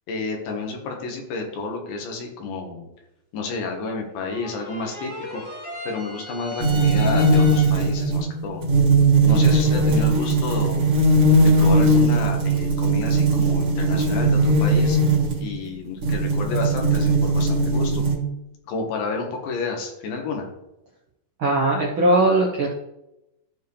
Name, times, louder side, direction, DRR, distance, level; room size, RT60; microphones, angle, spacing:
voice 1, 0.1-2.9 3.3-5.4 5.8-8.6 9.2-10.9 11.4-15.0 15.4-18.0 18.7-20.5, left 4 dB, 80° left, 2 dB, 3.3 m, -30 dB
sound 1, 4.2-8.0, left 3 dB, 45° left, 0.6 m, -36 dB
sound 2, 6.6-15.5 16.0-18.2, right 2 dB, 50° right, 2.3 m, -19 dB
voice 2, 21.4-22.7, right 2 dB, 85° right, -2 dB, 1.1 m, -19 dB
14.0 x 4.8 x 3.3 m, 0.89 s
omnidirectional pair, 4.1 m